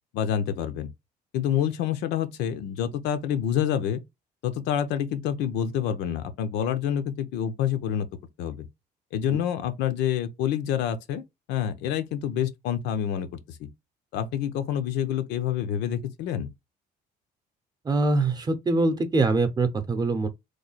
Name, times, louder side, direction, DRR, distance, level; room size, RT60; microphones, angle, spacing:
voice 1, 0.1-0.9 1.3-4.0 4.4-8.1 8.4-8.7 9.1-13.7 14.1-16.5, left 9 dB, 85° left, 0.6 m, -27 dB
voice 2, 17.8-20.3, right 3 dB, 25° right, 0.7 m, -23 dB
3.2 x 2.2 x 4.0 m
cardioid pair, 110°, 17 cm